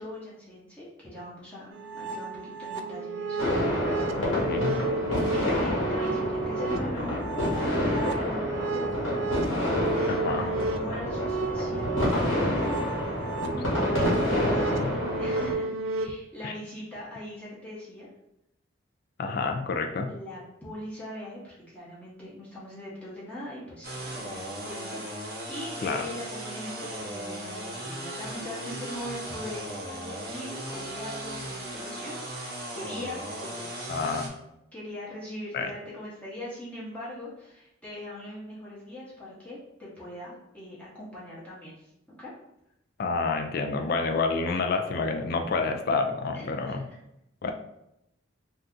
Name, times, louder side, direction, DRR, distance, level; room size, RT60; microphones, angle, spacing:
voice 1, 0.0-1.7 1.9-4.0 5.3-9.1 10.3-12.4 14.5-18.1 20.1-34.0 34.7-42.3 46.3-47.0, left 1 dB, 5° left, -8 dB, 0.8 m, -41 dB
sound 1, 1.7-16.1, right 3 dB, 70° right, 0.3 m, -33 dB
sound 2, 3.4-15.5, left 1 dB, 80° left, 1.2 m, -28 dB
voice 2, 4.2-4.7 10.1-10.5 13.4-13.6 14.0-14.9 16.4-16.5 19.2-20.1 25.8-26.1 33.9-34.3 35.5-35.7 43.0-46.8 47.4-47.5, left 4 dB, 50° left, 5 dB, 0.3 m, -29 dB
sound 3, 23.8-34.3, right 1 dB, 50° right, 0.8 m, -37 dB
2.7 x 2.4 x 3.5 m, 0.81 s
head